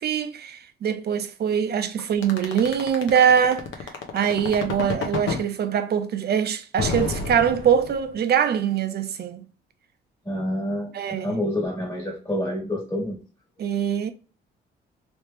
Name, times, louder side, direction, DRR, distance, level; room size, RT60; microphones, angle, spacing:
voice 1, 0.0-9.4 10.9-11.4 13.6-14.1, right 8 dB, 55° right, 0.6 m, -23 dB
sound 1, 2.2-5.4 6.8-8.2, left 5 dB, 75° left, 0.8 m, -29 dB
voice 2, 10.2-13.2, left 1 dB, 15° left, 1.6 m, -28 dB
3.1 x 3.0 x 3.3 m
cardioid pair, 90°, 20 cm